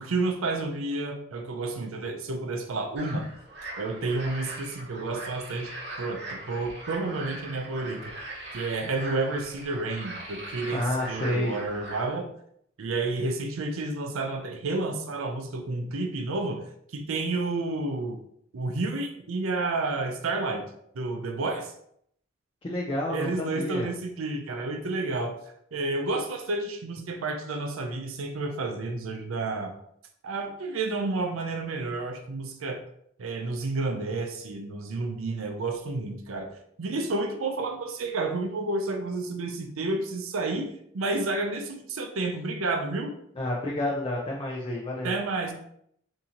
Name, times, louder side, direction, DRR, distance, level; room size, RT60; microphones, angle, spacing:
voice 1, 0.0-3.3 3.8-5.7 6.0-8.1 8.5-12.3 12.8-16.6 16.9-18.2 18.5-20.6 20.9-21.7 23.1-25.4 25.7-29.7 30.2-32.8 33.2-36.5 36.8-40.7 40.9-43.2 45.0-45.5, right 3 dB, 80° right, 5 dB, 0.5 m, -30 dB
sound 1, 3.0-12.0, right 1 dB, 55° right, 0.9 m, -40 dB
voice 2, 10.7-11.5 22.6-23.9 43.4-45.1, left 1 dB, 25° left, -2 dB, 0.4 m, -29 dB
3.7 x 2.7 x 2.8 m, 0.69 s
head